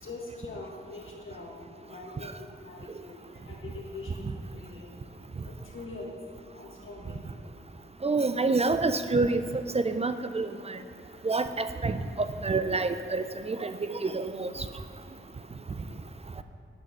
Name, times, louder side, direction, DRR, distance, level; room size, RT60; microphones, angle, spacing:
voice 1, 0.0-1.6 1.9-2.3 2.6-3.1 3.5-4.9 5.4-6.1 6.5-7.2, left 3 dB, 80° left, -1 dB, 1.6 m, -43 dB
voice 2, 8.0-9.4 9.7-10.8 11.2-14.6, right 3 dB, 30° right, 10 dB, 0.4 m, -28 dB
10.0 x 5.6 x 5.5 m, 2.2 s
wide cardioid pair, 95°, 21 cm